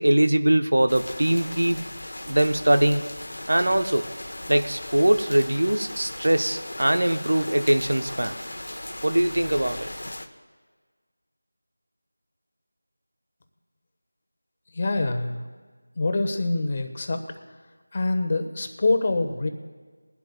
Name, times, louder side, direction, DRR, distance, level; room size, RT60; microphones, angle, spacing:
voice 1, 0.0-1.8 2.3-3.0 3.5-4.1 4.5-8.3 9.0-9.9, right 1 dB, 70° right, 8 dB, 0.9 m, -22 dB
sound 1, 0.9-10.3, left 1 dB, 70° left, 1.1 m, -37 dB
voice 2, 14.7-15.4 15.9-17.2 17.9-19.5, left 2 dB, 30° left, 6 dB, 0.9 m, -25 dB
21.5 x 12.0 x 2.3 m, 1.5 s
figure-of-eight pair, 175°, 0 cm